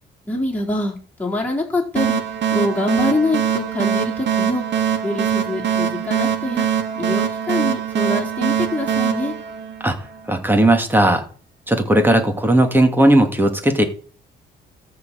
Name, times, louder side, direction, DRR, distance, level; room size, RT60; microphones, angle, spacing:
voice 1, 0.3-2.2 2.5-4.6 5.0-6.7 6.9-9.3, left 2 dB, 10° left, -3 dB, 4.5 m, -24 dB
sound 1, 2.0-10.3, right 8 dB, 60° right, 2.2 m, -22 dB
voice 2, 10.3-11.2 11.7-13.8, right 1 dB, 10° right, 4 dB, 2.5 m, -16 dB
14.0 x 4.6 x 7.9 m, 0.42 s
cardioid pair, 90°, 20 cm